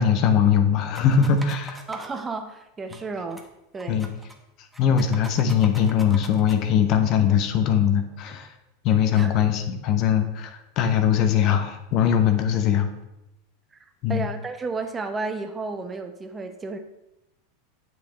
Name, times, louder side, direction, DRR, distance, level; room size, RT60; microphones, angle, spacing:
voice 1, 0.0-1.8 3.9-4.1 4.8-8.5 8.8-12.9 14.0-14.3, left 8 dB, 50° left, 7 dB, 1.0 m, -21 dB
sound 1, 0.9-2.1 2.9-3.0 3.3-3.5 3.8-4.4 4.7-6.6, right 1 dB, 5° right, 1.2 m, -42 dB
voice 2, 1.9-3.5 3.7-4.0 9.1-9.3 13.7-13.8 14.1-16.8, right 3 dB, 20° right, 7 dB, 0.9 m, -32 dB
7.9 x 6.4 x 4.4 m, 0.90 s
hypercardioid pair, 100°, 0 cm